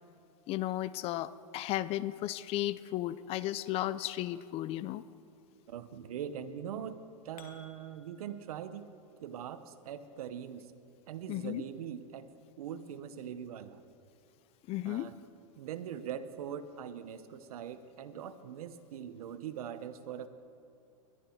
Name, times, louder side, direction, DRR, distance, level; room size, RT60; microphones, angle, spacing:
voice 1, 0.5-5.0 11.3-11.6 14.7-15.1, left 15 dB, 35° left, 17 dB, 0.4 m, -34 dB
voice 2, 5.7-8.9 9.2-10.7 11.1-12.3 12.6-13.8 14.8-15.2 15.6-20.3, right 9 dB, 80° right, 12 dB, 1.0 m, -42 dB
sound 1, 6.9-8.4, left 7 dB, 85° left, 1.6 m, -57 dB
21.0 x 12.0 x 4.5 m, 2.7 s
supercardioid pair, 135°, 19 cm